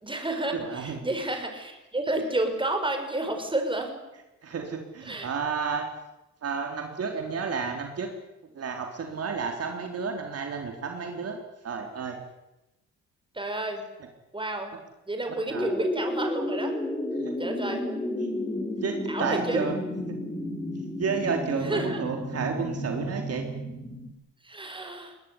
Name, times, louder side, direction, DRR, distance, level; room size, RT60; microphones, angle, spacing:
voice 1, 0.0-4.0 5.0-5.3 13.3-13.8 14.3-14.7 15.1-16.8 17.4-17.9 19.1-19.7 21.6-22.0 24.4-25.1, right 2 dB, 15° right, 5 dB, 6.2 m, -30 dB
voice 2, 0.5-1.0 4.4-5.9 6.4-8.1 8.5-12.2 15.5-15.7 17.2-17.3 17.7-17.8 18.2-18.3 18.8-19.7 21.0-23.4, right 5 dB, 55° right, 3 dB, 3.8 m, -31 dB
sound 1, 15.5-24.1, left 1 dB, 10° left, 4.0 m, -32 dB
21.5 x 19.5 x 10.0 m, 0.96 s
cardioid pair, 90°, 30 cm